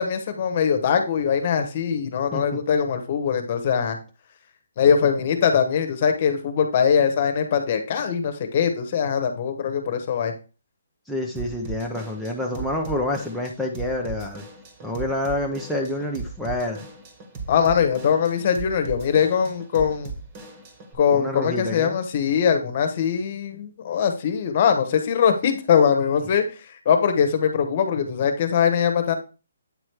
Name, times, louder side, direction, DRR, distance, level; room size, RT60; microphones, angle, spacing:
voice 1, 0.0-4.0 4.8-10.3 17.5-20.1 21.0-29.2, left 7 dB, 40° left, 7 dB, 1.2 m, -22 dB
voice 2, 2.3-2.6 11.1-14.4 14.8-16.9 21.1-21.9, left 1 dB, ahead, -1 dB, 0.7 m, -28 dB
Drum kit / Drum, 11.4-21.0, right 4 dB, 30° right, 1.6 m, -38 dB
8.7 x 3.1 x 4.6 m, 0.33 s
hypercardioid pair, 145°, 0 cm